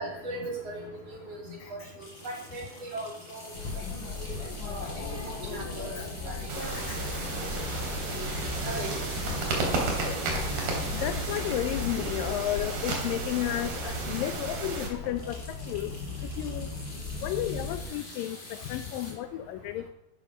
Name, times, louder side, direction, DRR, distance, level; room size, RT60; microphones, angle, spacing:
voice 1, 0.0-1.4 1.7-1.8 2.2-2.6 2.9-3.5 4.2-4.3 4.6-4.9 5.2-6.0 6.3-6.4 8.6-8.9 9.6-9.7, right 2 dB, 40° right, 0 dB, 3.6 m, -37 dB
sound 1, 2.0-13.3 13.8-13.9 14.1-14.3 14.6-19.1, left 2 dB, 20° left, 4.4 m, -46 dB
sound 2, 3.5-17.9, left 3 dB, 55° left, 5.6 m, -37 dB
sound 3, 6.5-14.9, right 3 dB, 65° right, 4.9 m, -33 dB
voice 2, 11.0-15.4 15.7-15.9 16.4-16.7 17.2-19.9, left 13 dB, 80° left, 10 dB, 2.0 m, -32 dB
13.0 x 11.5 x 6.0 m, 0.89 s
omnidirectional pair, 4.7 m